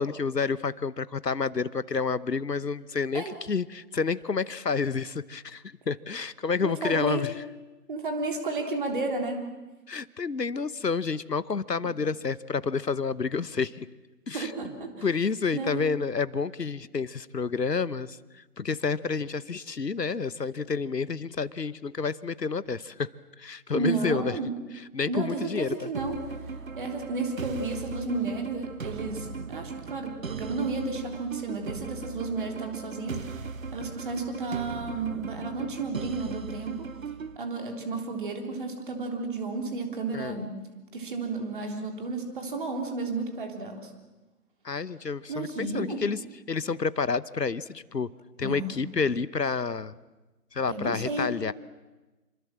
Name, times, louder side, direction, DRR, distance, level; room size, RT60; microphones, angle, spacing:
voice 1, 0.0-7.3 9.9-13.9 14.3-14.5 15.0-23.1 23.4-24.4 24.9-25.7 40.1-40.4 44.6-46.2 46.5-48.1 48.4-49.9 50.5-51.5, left 5 dB, 85° left, 17 dB, 1.1 m, -29 dB
voice 2, 6.6-7.3 7.9-9.4 14.3-15.1 15.5-15.9 23.7-24.5 25.1-26.4 26.8-33.4 33.7-36.9 37.4-40.6 40.9-43.9 45.3-46.0 48.4-48.7 50.7-51.4, right 3 dB, 30° right, 3 dB, 3.5 m, -32 dB
sound 1, 25.9-37.4, right 5 dB, 55° right, 1.0 m, -38 dB
27.0 x 24.5 x 7.5 m, 1.1 s
figure-of-eight pair, 160°, 48 cm